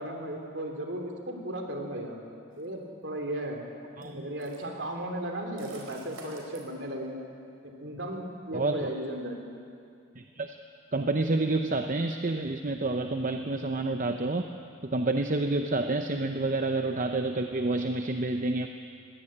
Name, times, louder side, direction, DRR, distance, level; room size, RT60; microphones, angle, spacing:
voice 1, 0.0-2.1 2.6-3.7 4.1-7.3 7.6-9.4, right 1 dB, 55° right, 2 dB, 3.2 m, -35 dB
sound 1, 2.5-2.7 4.0-4.7 5.6-6.6, right 1 dB, 75° right, 4.6 m, -47 dB
voice 2, 4.0-4.3 8.5-8.9 10.2-10.6 10.9-14.5 14.8-18.7, right 2 dB, 40° right, 6 dB, 0.7 m, -29 dB
21.0 x 17.0 x 8.6 m, 2.4 s
head